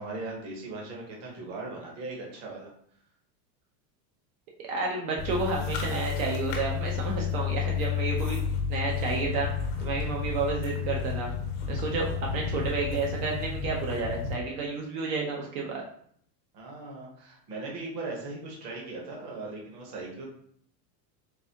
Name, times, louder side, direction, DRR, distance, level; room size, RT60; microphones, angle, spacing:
voice 1, 0.0-2.7 16.5-20.2, right 3 dB, 35° right, -2 dB, 1.0 m, -38 dB
voice 2, 4.6-8.4 8.7-9.5 9.8-11.3 11.7-15.8, right 4 dB, 60° right, -1 dB, 0.9 m, -31 dB
sound 1, 5.2-14.3, left 7 dB, 55° left, 1.0 m, -31 dB
4.0 x 3.5 x 2.8 m, 0.63 s
supercardioid pair, 175°, 47 cm